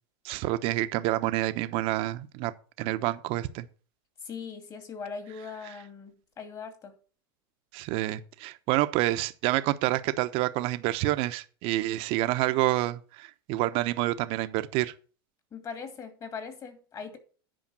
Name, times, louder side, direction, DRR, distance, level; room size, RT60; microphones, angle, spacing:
voice 1, 0.2-2.5 2.8-3.7 7.7-14.9, right 16 dB, 50° right, 1.0 m, -28 dB
voice 2, 4.2-7.0 15.5-17.2, left 5 dB, 30° left, 2.5 m, -40 dB
10.0 x 5.1 x 7.6 m
supercardioid pair, 120°, 12 cm